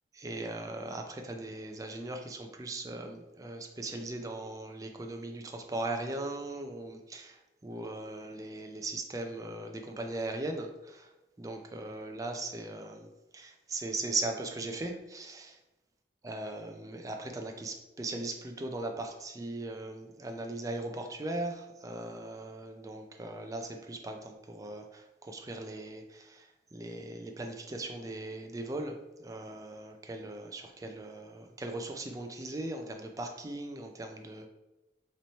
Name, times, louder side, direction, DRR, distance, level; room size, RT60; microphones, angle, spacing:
voice 1, 0.2-11.1 11.4-15.6 16.2-34.5, right 2 dB, 20° right, 3 dB, 0.4 m, -39 dB
3.0 x 2.7 x 4.2 m, 1.0 s
head